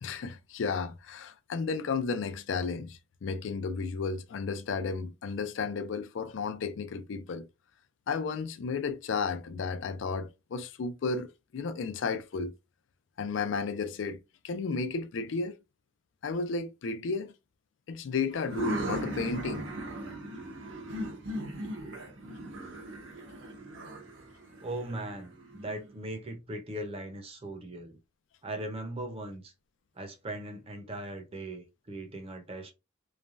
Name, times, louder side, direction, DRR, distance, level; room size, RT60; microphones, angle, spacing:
voice 1, 0.0-7.5 8.1-12.5 13.2-14.2 14.4-15.6 16.2-17.3 17.9-19.7, left 4 dB, 70° left, 0.4 m, -33 dB
sound 1, 18.3-25.9, right 1 dB, 80° right, 0.9 m, -38 dB
voice 2, 24.6-28.0 28.4-29.5 29.9-32.7, right 1 dB, 30° right, 0.6 m, -39 dB
3.2 x 2.2 x 2.5 m
head